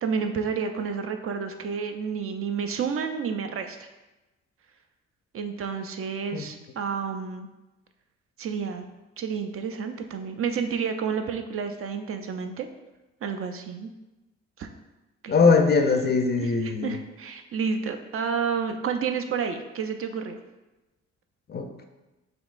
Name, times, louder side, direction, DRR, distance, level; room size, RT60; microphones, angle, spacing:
voice 1, 0.0-3.8 5.3-7.5 8.4-8.9 9.2-12.7 13.2-13.9 14.6-14.7 15.2-15.3 16.4-20.4, right 6 dB, 50° right, 6 dB, 0.4 m, -30 dB
voice 2, 15.3-17.0 21.5-21.8, left 4 dB, 35° left, 6 dB, 0.4 m, -21 dB
5.1 x 3.0 x 2.4 m, 1.1 s
cardioid pair, 90°, 30 cm